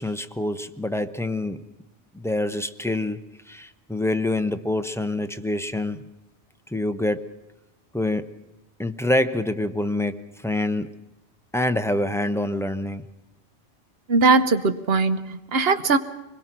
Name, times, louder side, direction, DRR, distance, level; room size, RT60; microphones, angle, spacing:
voice 1, 0.0-1.6 2.1-3.2 3.5-6.0 6.7-7.4 7.9-8.4 8.8-11.0 11.5-13.1, left 1 dB, 5° left, 0.5 m, -26 dB
voice 2, 14.1-16.0, right 4 dB, 60° right, 1.2 m, -20 dB
24.5 x 21.0 x 6.0 m
omnidirectional pair, 1.2 m